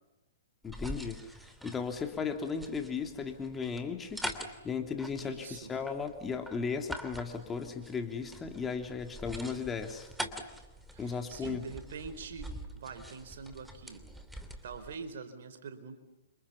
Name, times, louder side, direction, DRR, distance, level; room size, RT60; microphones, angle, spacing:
voice 1, 0.6-4.3 4.6-10.1 11.0-11.6, left 5 dB, 15° left, 5 dB, 3.1 m, -36 dB
sound 1, 0.6-15.0, right 1 dB, 5° right, 2.8 m, -45 dB
voice 2, 5.2-5.7 10.9-14.0 14.6-16.0, right 5 dB, 65° right, 9 dB, 4.4 m, -44 dB
30.0 x 26.5 x 7.1 m, 1.0 s
hypercardioid pair, 125°, 0 cm